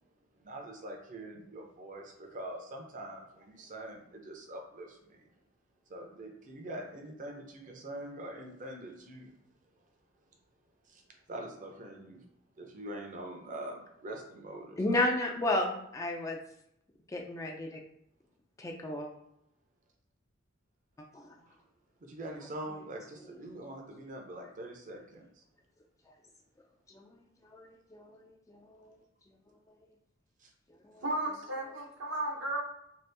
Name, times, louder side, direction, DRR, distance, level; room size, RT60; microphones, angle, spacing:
voice 1, 0.4-5.3 5.9-9.3 10.9-11.0 11.3-12.3 12.6-15.0 21.4-21.6 22.0-25.4 30.4-30.5, right 1 dB, 40° right, 2 dB, 0.6 m, -44 dB
voice 2, 14.8-16.4 17.1-17.8 18.6-19.1 21.1-21.2 26.9-27.0 27.5-28.2 28.5-28.8 30.9-31.0, left 2 dB, 15° left, 1 dB, 0.3 m, -32 dB
voice 3, 31.0-32.6, right 1 dB, 70° right, -1 dB, 0.8 m, -34 dB
2.8 x 2.4 x 3.3 m, 0.79 s
head